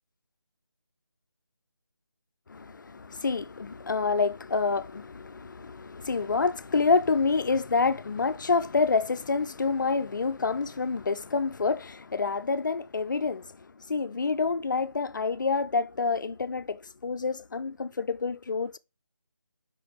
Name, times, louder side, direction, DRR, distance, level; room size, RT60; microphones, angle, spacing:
voice 1, 2.5-13.5 13.9-18.8, left 4 dB, 50° left, 0.4 m, -27 dB
5.5 x 5.1 x 3.4 m
figure-of-eight pair, 165°, 13 cm